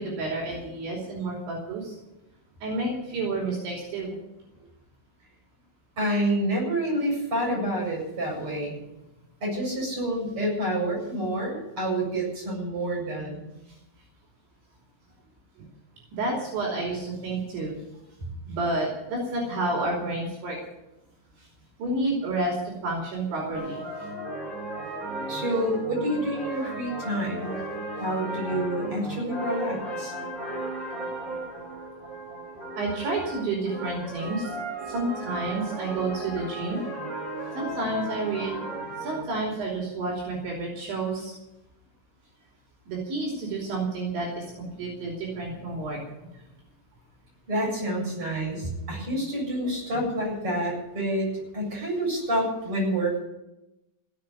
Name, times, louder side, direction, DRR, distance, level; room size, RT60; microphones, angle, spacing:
voice 1, 0.0-2.0 2.6-4.1 16.1-17.7 18.5-20.6 21.8-22.6 22.8-24.1 30.5-30.6 32.8-34.5 34.8-36.8 37.6-38.6 39.0-41.3 42.9-46.0 49.6-49.7, right 2 dB, 70° right, -2 dB, 5.4 m, -30 dB
voice 2, 6.0-8.8 9.4-13.4 25.3-27.6 28.0-30.1 47.5-53.2, right 1 dB, 25° right, -3 dB, 8.1 m, -28 dB
sound 1, 23.5-39.2, right 1 dB, 10° right, 4.6 m, -35 dB
17.0 x 7.4 x 9.4 m, 0.93 s
omnidirectional pair, 5.5 m